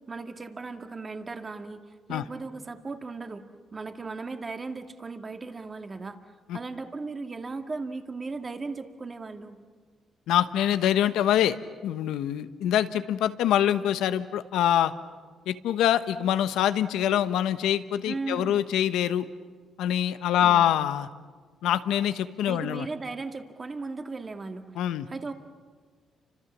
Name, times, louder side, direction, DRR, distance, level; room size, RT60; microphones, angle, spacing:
voice 1, 0.1-1.8 2.1-3.5 3.7-6.2 6.5-9.6 18.1-18.6 20.4-20.6 22.5-24.7 25.1-25.3, right 3 dB, 30° right, 6 dB, 2.0 m, -36 dB
voice 2, 10.3-11.6 11.8-14.9 15.5-19.2 19.8-21.1 21.6-22.9 24.8-25.1, left 11 dB, 85° left, 11 dB, 1.1 m, -25 dB
30.0 x 26.0 x 7.4 m, 1.5 s
cardioid pair, 90°, 0 cm